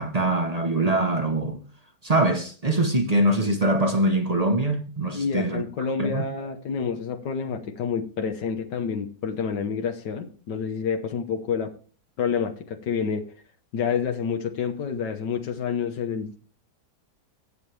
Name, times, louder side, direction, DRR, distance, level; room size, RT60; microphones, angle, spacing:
voice 1, 0.0-1.6 2.0-5.6 6.0-6.2, right 1 dB, 35° right, 0.7 m, -23 dB
voice 2, 5.1-11.7 12.2-13.2 13.7-16.4, left 6 dB, 90° left, 1.7 m, -28 dB
17.0 x 7.1 x 3.3 m
omnidirectional pair, 1.8 m